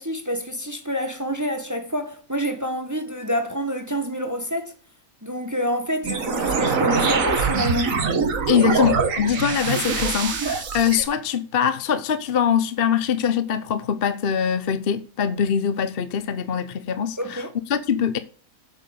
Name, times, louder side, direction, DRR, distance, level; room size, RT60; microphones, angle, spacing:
voice 1, 0.0-4.7 5.2-8.1 17.2-17.5, equal, 10° right, 1.7 m, -27 dB
sound 1, 6.0-11.0, right 5 dB, 65° right, 1.8 m, -23 dB
voice 2, 8.5-18.2, left 8 dB, 45° left, 1.0 m, -23 dB
8.0 x 7.8 x 8.3 m
omnidirectional pair, 1.5 m